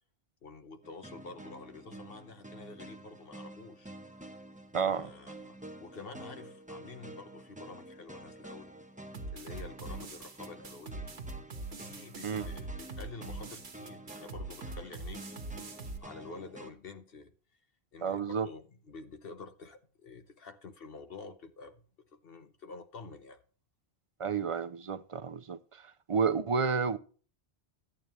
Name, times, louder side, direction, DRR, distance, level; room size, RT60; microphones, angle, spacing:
voice 1, 0.4-3.9 4.9-8.7 9.3-11.1 11.8-15.2 16.0-17.3 17.9-21.8 22.1-23.4, left 3 dB, 60° left, 1.1 m, -48 dB
sound 1, 0.8-16.7, right 1 dB, 5° right, 1.0 m, -49 dB
voice 2, 4.7-5.1 12.2-12.5 18.0-18.5 24.2-27.0, right 5 dB, 45° right, 0.5 m, -31 dB
sound 2, 9.1-16.0, right 3 dB, 75° right, 1.5 m, -42 dB
11.5 x 9.1 x 3.0 m
omnidirectional pair, 1.1 m